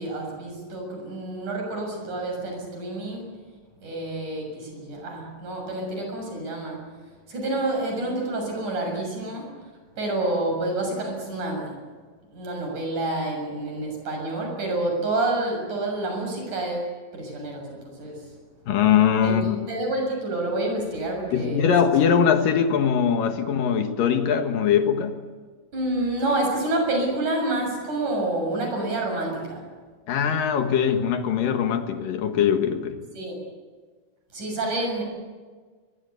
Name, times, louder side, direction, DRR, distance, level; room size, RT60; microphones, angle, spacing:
voice 1, 0.0-3.3 3.8-6.8 7.3-9.5 10.0-11.8 12.3-18.2 19.2-21.7 25.7-29.6 33.1-33.4 34.3-35.0, right 2 dB, 60° right, 8.3 m, -28 dB
voice 2, 18.7-19.7 21.3-25.2 30.1-33.0, left 8 dB, 75° left, 3.3 m, -21 dB
23.5 x 23.0 x 8.2 m
omnidirectional pair, 3.9 m